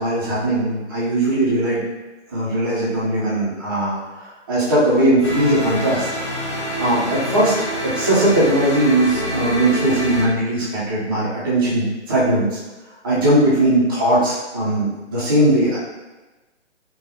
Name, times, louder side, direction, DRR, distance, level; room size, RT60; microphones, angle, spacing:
voice 1, 0.0-1.8 2.3-6.1 6.3-6.4 6.8-12.6 13.0-15.8, right 1 dB, 20° right, -10 dB, 0.7 m, -19 dB
sound 1, 5.2-10.2, equal, 25° left, 0.6 m, -26 dB
4.9 x 2.4 x 2.7 m, 1.1 s
figure-of-eight pair, 140°, 36 cm